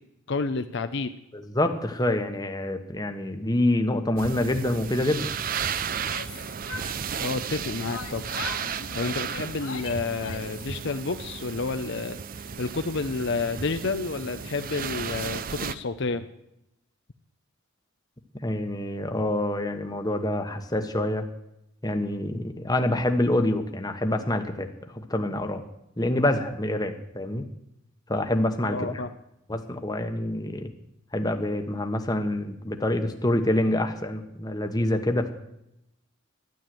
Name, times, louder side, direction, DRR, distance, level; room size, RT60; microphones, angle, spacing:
voice 1, 0.3-1.1 7.2-8.2 8.9-16.3 28.7-29.1, left 3 dB, 55° left, 9 dB, 0.7 m, -30 dB
voice 2, 1.5-5.3 18.4-21.3 21.8-24.7 24.9-25.6 26.0-27.4 28.1-28.8 29.5-30.7 31.1-35.3, left 1 dB, 20° left, 6 dB, 1.2 m, -26 dB
sound 1, 4.2-15.8, right 7 dB, 40° right, 0.6 m, -34 dB
Yell, 5.9-7.6 7.9-10.7, left 4 dB, 85° left, 2.4 m, -40 dB
13.0 x 11.0 x 7.7 m, 0.83 s
head